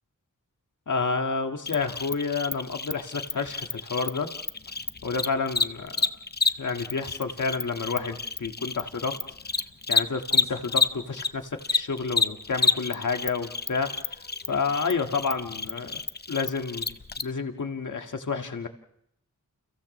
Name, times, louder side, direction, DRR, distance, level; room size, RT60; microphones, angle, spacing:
voice 1, 0.9-4.3 5.0-6.1 6.6-9.2 9.9-13.9 14.5-16.0 16.3-18.7, left 4 dB, 70° left, 5 dB, 1.8 m, -30 dB
Cricket, 1.7-11.3 11.6-17.2, left 4 dB, 30° left, 0.8 m, -28 dB
30.0 x 29.5 x 3.2 m, 0.73 s
wide cardioid pair, 70°, 32 cm